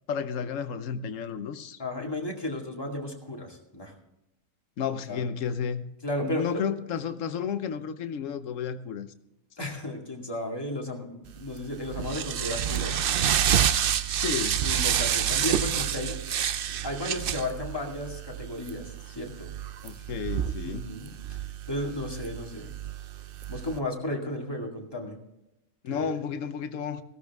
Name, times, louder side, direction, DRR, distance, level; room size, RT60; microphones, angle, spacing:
voice 1, 0.1-1.8 4.8-5.8 6.2-9.1 14.2-14.6 19.8-20.8 25.8-27.0, left 7 dB, 65° left, 11 dB, 1.2 m, -32 dB
voice 2, 1.8-3.9 5.1-5.2 6.0-6.6 9.6-13.0 14.6-16.2 16.8-19.5 20.6-21.4 21.7-22.7 23.5-25.2 25.9-26.1, left 1 dB, 15° left, 0 dB, 2.1 m, -34 dB
sound 1, 11.4-23.8, right 9 dB, 60° right, 0.6 m, -29 dB
16.0 x 13.0 x 3.5 m, 0.91 s
omnidirectional pair, 1.5 m